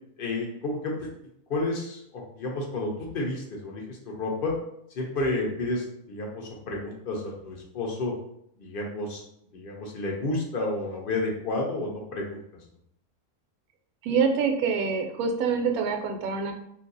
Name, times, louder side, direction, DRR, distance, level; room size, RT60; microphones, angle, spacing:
voice 1, 0.2-1.1 1.5-4.5 4.9-8.1 8.6-9.2 9.5-12.4, left 2 dB, 55° left, -1 dB, 0.6 m, -31 dB
voice 2, 14.0-16.5, right 5 dB, 75° right, 5 dB, 1.0 m, -25 dB
2.6 x 2.6 x 3.9 m, 0.73 s
omnidirectional pair, 1.6 m